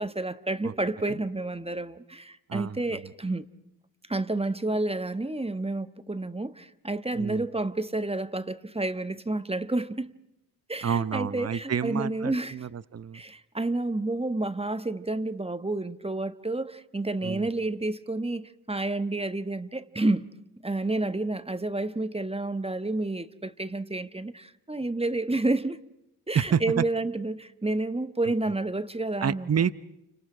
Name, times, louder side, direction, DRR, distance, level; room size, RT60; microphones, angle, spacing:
voice 1, 0.0-3.5 4.1-10.1 10.7-12.6 13.1-20.3 20.6-25.8 26.3-29.6, right 2 dB, 15° right, 1.3 m, -30 dB
voice 2, 2.5-3.0 7.1-7.5 10.8-13.2 17.2-17.5 26.3-26.8 29.2-29.7, right 7 dB, 40° right, 0.9 m, -29 dB
29.5 x 26.0 x 5.0 m
supercardioid pair, 50°, 39 cm